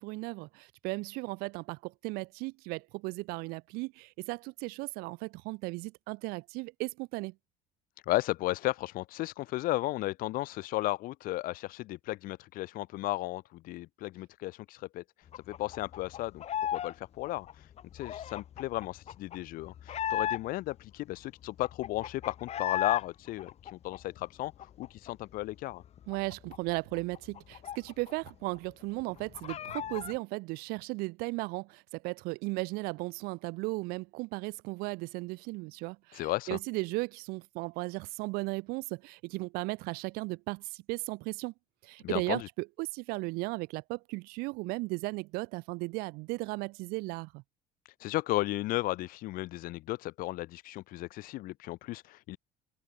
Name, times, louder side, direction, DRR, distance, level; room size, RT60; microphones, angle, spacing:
voice 1, 0.0-7.3 26.1-41.5 41.8-47.4, right 25 dB, 85° right, 5.4 m, -36 dB
voice 2, 8.1-15.0 15.5-17.5 17.9-25.8 36.1-36.6 42.0-42.5 48.0-52.4, left 17 dB, 70° left, 2.0 m, -34 dB
sound 1, 15.3-16.9 17.2-20.7 21.1-21.2 21.4-23.1 23.4-25.1 25.4-25.5 25.8-28.3 28.6-28.7 29.0-30.2, left 10 dB, 45° left, 4.0 m, -36 dB
cardioid pair, 135°, 15 cm